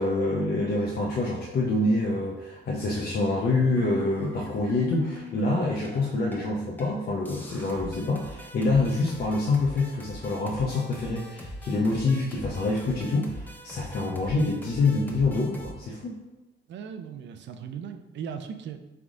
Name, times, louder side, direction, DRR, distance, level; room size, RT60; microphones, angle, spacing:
voice 1, 0.0-16.2, left 2 dB, 50° left, -3 dB, 0.7 m, -26 dB
sound 1, 3.8-6.5 6.8-7.0 7.3-15.7, left 1 dB, 10° left, 0.7 m, -42 dB
voice 2, 16.7-18.8, right 7 dB, 65° right, 8 dB, 0.5 m, -38 dB
3.8 x 3.4 x 3.6 m, 1.0 s
cardioid pair, 90°, 20 cm